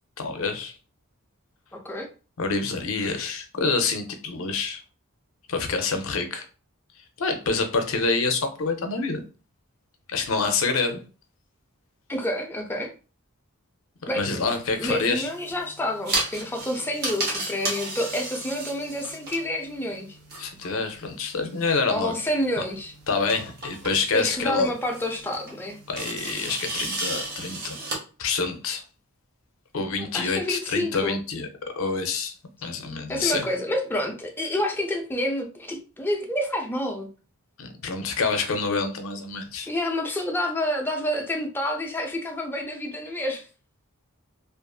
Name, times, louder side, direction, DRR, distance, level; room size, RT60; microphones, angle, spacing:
voice 1, 0.2-0.7 2.4-4.8 5.5-6.5 7.2-9.2 10.1-11.0 14.1-15.3 20.4-22.2 22.6-22.7 23.1-24.7 25.9-27.8 28.2-28.8 29.7-31.5 31.8-32.3 32.6-33.5 37.6-39.7, left 4 dB, 65° left, 6 dB, 0.5 m, -27 dB
voice 2, 1.7-2.1 12.1-12.9 14.1-14.2 14.7-20.2 21.9-22.9 24.1-25.8 30.0-31.2 33.1-37.1 39.7-43.5, left 1 dB, 10° left, 2 dB, 0.4 m, -28 dB
sound 1, 14.2-28.0, right 2 dB, 45° right, 0.8 m, -35 dB
2.4 x 2.4 x 2.3 m, 0.35 s
head